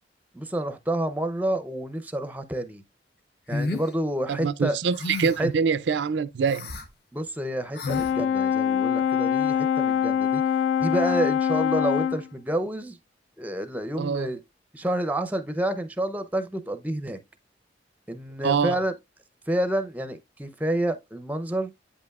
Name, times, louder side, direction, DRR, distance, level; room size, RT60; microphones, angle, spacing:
voice 1, 0.3-2.8 3.5-4.8 5.4-5.5 7.1-10.4 10.8-13.0 13.4-14.4 14.7-17.2 18.1-18.9 19.5-21.7, right 1 dB, 10° right, 0.5 m, -29 dB
sound 1, 3.5-3.9 4.9-5.5 6.4-6.9 7.7-8.1, left 2 dB, 60° left, 0.8 m, -31 dB
voice 2, 4.3-6.7 14.0-14.3 18.4-18.8, right 6 dB, 75° right, 0.4 m, -25 dB
Brass instrument, 7.9-12.3, left 8 dB, 75° left, 0.3 m, -24 dB
8.4 x 5.4 x 2.3 m
head